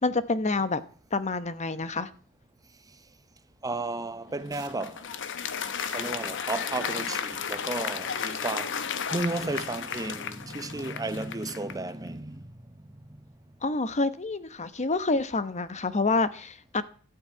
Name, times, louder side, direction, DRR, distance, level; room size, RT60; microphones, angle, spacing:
voice 1, 0.0-0.8 1.1-2.1 13.6-16.8, left 3 dB, 30° left, 0.9 m, -27 dB
voice 2, 3.6-5.0 5.9-8.8 9.1-12.6 13.1-13.2, right 2 dB, 15° right, 0.8 m, -33 dB
Applause, 4.3-11.9, left 7 dB, 55° left, 1.0 m, -34 dB
sound 1, 4.5-9.6, right 6 dB, 55° right, 2.7 m, -51 dB
13.0 x 9.2 x 8.4 m
head